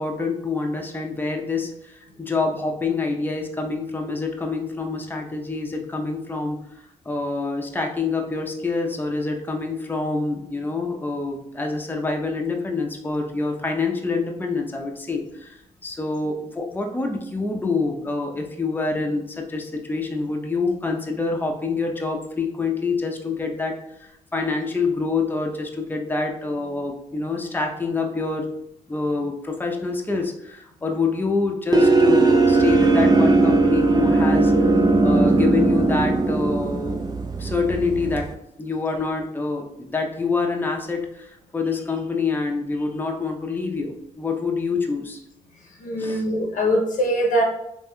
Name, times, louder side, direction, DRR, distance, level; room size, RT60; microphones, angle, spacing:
voice 1, 0.0-6.6 7.0-28.5 28.9-34.5 35.0-37.0 37.4-38.3 38.6-45.2 46.0-46.2, left 4 dB, 15° left, 1 dB, 0.6 m, -26 dB
sound 1, 31.7-38.3, right 3 dB, 30° right, 0.4 m, -18 dB
voice 2, 45.8-47.4, equal, 75° left, 0 dB, 0.7 m, -22 dB
3.3 x 2.6 x 2.2 m, 0.82 s
supercardioid pair, 55°, 13 cm